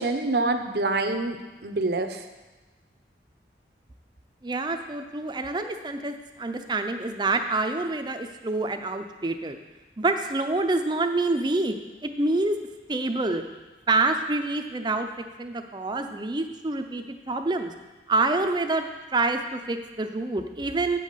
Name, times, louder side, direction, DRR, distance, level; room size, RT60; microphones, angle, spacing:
voice 1, 0.0-2.2, right 2 dB, 60° right, 7 dB, 0.7 m, -26 dB
voice 2, 4.4-9.6 10.0-11.8 12.0-12.6 12.9-13.4 13.9-17.7 18.1-18.8 19.1-21.0, right 2 dB, 25° right, 7 dB, 0.5 m, -27 dB
8.3 x 5.4 x 6.6 m, 1.2 s
head